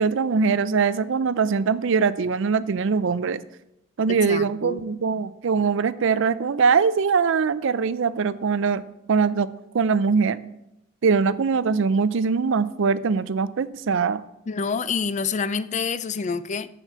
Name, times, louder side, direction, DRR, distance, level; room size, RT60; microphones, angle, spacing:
voice 1, 0.0-3.4 4.0-8.8 9.1-9.5 9.7-10.4 11.0-14.2, right 5 dB, 65° right, 15 dB, 0.5 m, -22 dB
voice 2, 4.1-4.8 14.5-16.7, left 5 dB, 35° left, 15 dB, 0.4 m, -27 dB
7.3 x 7.0 x 7.1 m, 0.84 s
head